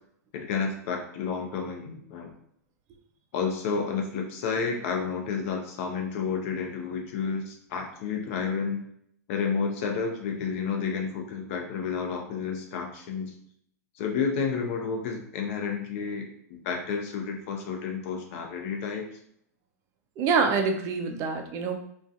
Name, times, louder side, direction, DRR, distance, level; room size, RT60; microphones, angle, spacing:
voice 1, 0.3-2.3 3.3-8.8 9.3-13.3 14.0-19.2, left 5 dB, 55° left, 3 dB, 0.6 m, -31 dB
voice 2, 20.2-21.9, right 5 dB, 35° right, 5 dB, 0.4 m, -26 dB
2.5 x 2.2 x 2.4 m, 0.69 s
hypercardioid pair, 120°, 9 cm